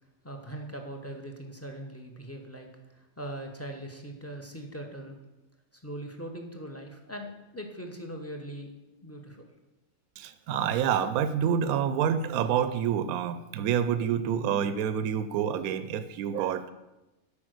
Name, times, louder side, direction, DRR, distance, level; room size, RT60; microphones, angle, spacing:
voice 1, 0.2-5.2 5.7-8.7 9.0-9.4, right 1 dB, 10° left, 3 dB, 0.9 m, -41 dB
voice 2, 10.2-16.7, right 8 dB, 85° right, 12 dB, 1.0 m, -28 dB
8.6 x 5.2 x 6.5 m, 1.0 s
omnidirectional pair, 1.5 m